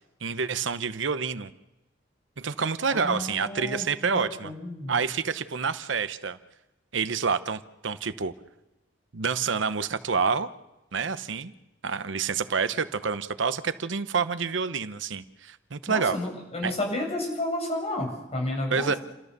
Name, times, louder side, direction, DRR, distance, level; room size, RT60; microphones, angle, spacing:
voice 1, 0.2-1.5 2.4-4.5 4.9-6.4 6.9-8.3 9.1-10.5 10.9-11.5 11.8-16.2 16.6-16.7 18.7-19.0, right 5 dB, 80° right, 12 dB, 0.9 m, -28 dB
voice 2, 2.9-5.0 15.9-19.0, left 1 dB, 35° left, 1 dB, 7.4 m, -32 dB
29.5 x 14.0 x 6.8 m, 1.0 s
head